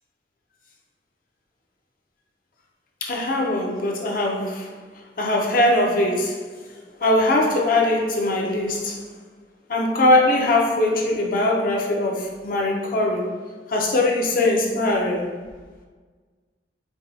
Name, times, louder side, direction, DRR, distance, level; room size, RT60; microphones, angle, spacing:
voice 1, 3.0-4.8 5.2-6.6 7.0-9.0 9.7-13.3 13.7-15.3, left 1 dB, 55° left, -1 dB, 0.6 m, -21 dB
4.7 x 2.2 x 2.6 m, 1.4 s
head